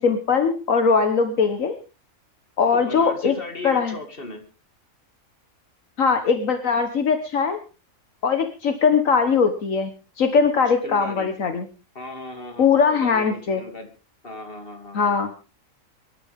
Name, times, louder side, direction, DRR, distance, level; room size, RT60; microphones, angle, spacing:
voice 1, 0.0-1.7 2.6-3.3 3.6-3.9 6.0-7.6 8.2-9.9 10.2-11.7 12.6-13.6 14.9-15.3, left 5 dB, 75° left, 7 dB, 1.7 m, -20 dB
voice 2, 2.7-4.4 10.8-11.3 11.9-13.9 14.2-15.1, left 2 dB, 40° left, 4 dB, 3.0 m, -37 dB
24.5 x 12.0 x 3.6 m, 0.33 s
omnidirectional pair, 1.4 m